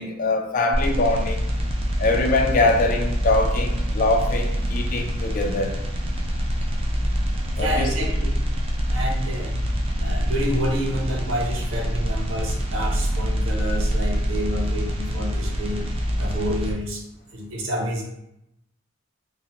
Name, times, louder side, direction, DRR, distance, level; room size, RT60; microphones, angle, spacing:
voice 1, 0.0-1.5 2.0-5.7 7.6-7.9, left 2 dB, 40° left, 0.3 m, -23 dB
sound 1, 0.7-16.7, equal, 30° right, 0.4 m, -25 dB
voice 2, 7.6-8.3 8.9-9.6 10.0-15.8 16.2-17.0 17.3-18.0, equal, 85° right, 0.6 m, -29 dB
2.7 x 2.1 x 2.8 m
head